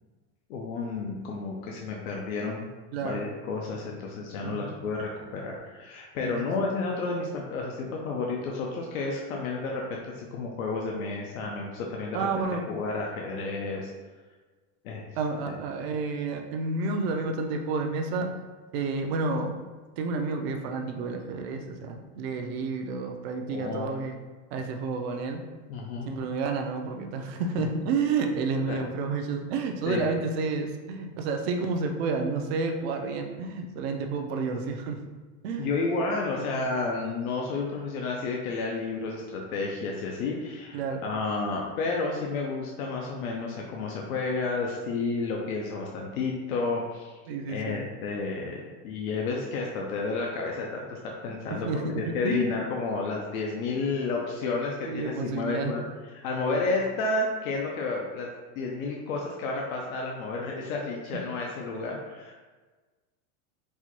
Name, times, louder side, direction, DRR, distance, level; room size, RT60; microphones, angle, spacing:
voice 1, 0.5-2.7 3.0-12.3 12.7-13.9 14.8-15.1 15.5-15.6 23.5-24.0 25.7-26.1 28.7-28.8 29.9-30.0 35.6-47.2 47.5-51.7 52.0-55.8 56.2-58.3 58.5-62.3, left 3 dB, 90° left, -1 dB, 0.7 m, -31 dB
voice 2, 2.9-3.2 4.4-4.7 6.2-6.5 12.1-12.6 15.2-18.3 18.7-19.6 20.0-24.2 24.5-25.4 26.1-35.0 35.4-35.7 36.3-36.6 40.7-41.0 47.3-47.8 51.5-52.6 54.9-55.8 61.7-61.9, right 4 dB, 50° right, 4 dB, 0.4 m, -30 dB
4.3 x 2.2 x 2.9 m, 1.3 s
supercardioid pair, 165°, 41 cm